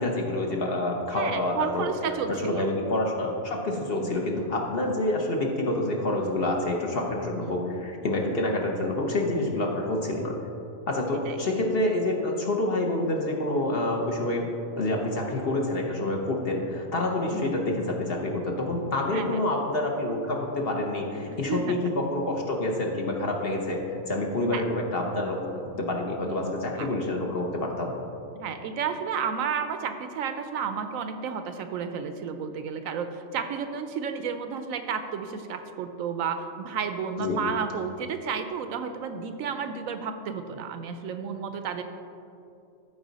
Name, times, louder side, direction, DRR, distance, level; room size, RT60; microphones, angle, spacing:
voice 1, 0.0-1.9 2.3-10.3 10.9-14.5 14.8-23.8 24.1-25.4 25.8-27.9 37.2-37.4, left 1 dB, 45° left, 0 dB, 1.0 m, -27 dB
voice 2, 1.1-2.7 4.0-4.1 7.4-7.6 11.3-11.4 17.3-17.5 19.1-19.4 21.3-21.8 24.5-24.6 26.2-26.4 26.8-26.9 28.3-41.8, right 6 dB, 75° right, 8 dB, 0.9 m, -32 dB
13.5 x 4.8 x 4.0 m, 2.7 s
omnidirectional pair, 1.5 m